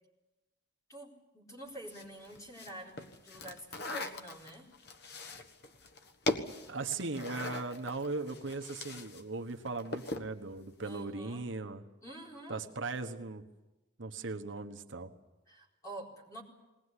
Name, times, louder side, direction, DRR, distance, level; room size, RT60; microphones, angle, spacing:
voice 1, 0.9-4.7 10.8-11.5 12.0-12.6 15.5-16.4, right 1 dB, 15° left, -2 dB, 4.2 m, -48 dB
sound 1, 1.9-9.2 9.5-10.3, left 2 dB, 55° left, 1.4 m, -40 dB
voice 2, 6.7-11.8 12.5-13.4 14.0-15.1, right 3 dB, 75° right, 5 dB, 1.2 m, -38 dB
20.5 x 19.0 x 9.8 m, 1.1 s
head